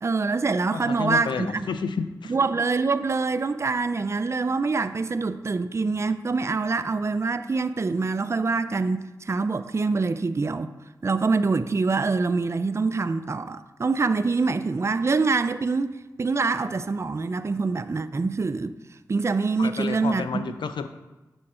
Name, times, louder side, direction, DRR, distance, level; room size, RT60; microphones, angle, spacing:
voice 1, 0.0-1.6 2.3-10.7 11.0-18.7 19.1-20.4, right 4 dB, 35° right, 0.4 m, -25 dB
voice 2, 0.7-2.3 19.6-20.9, left 5 dB, 85° left, 0.4 m, -30 dB
7.2 x 4.5 x 4.3 m
cardioid pair, 40°, 8 cm